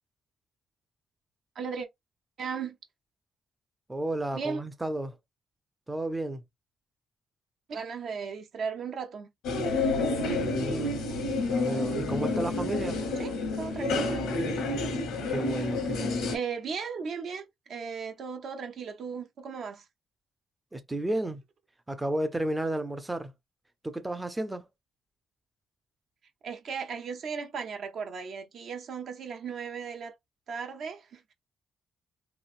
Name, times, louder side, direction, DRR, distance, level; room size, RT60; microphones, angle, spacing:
voice 1, 1.6-1.9 2.4-2.8 4.3-4.6 7.7-9.3 13.2-14.3 16.0-19.8 26.4-30.2 30.5-31.3, right 6 dB, 65° right, 0.7 m, -36 dB
voice 2, 3.9-5.2 5.9-6.4 10.4-11.0 11.5-13.0 15.3-16.3 20.7-21.4 21.9-23.3 23.8-24.7, right 1 dB, 15° right, 0.5 m, -32 dB
sound 1, 9.4-16.4, left 2 dB, 85° left, 1.0 m, -29 dB
3.1 x 2.5 x 2.4 m
cardioid pair, 90°, 0 cm